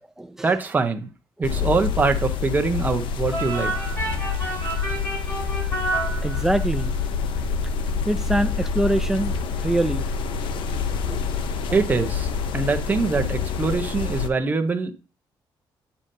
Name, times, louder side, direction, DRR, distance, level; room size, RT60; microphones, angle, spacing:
voice 1, 0.4-1.1 1.4-3.7 11.7-12.3 12.5-14.9, right 4 dB, 20° right, 0.8 m, -23 dB
sound 1, 1.4-14.3, left 5 dB, 75° left, 0.7 m, -27 dB
sound 2, 3.3-6.8, right 2 dB, 30° left, 2.9 m, -30 dB
voice 2, 6.2-7.0 8.0-9.3 9.6-10.1 11.1-11.2 11.7-11.8, right 1 dB, 5° right, 0.4 m, -24 dB
8.8 x 7.0 x 2.7 m
cardioid pair, 150°, 9 cm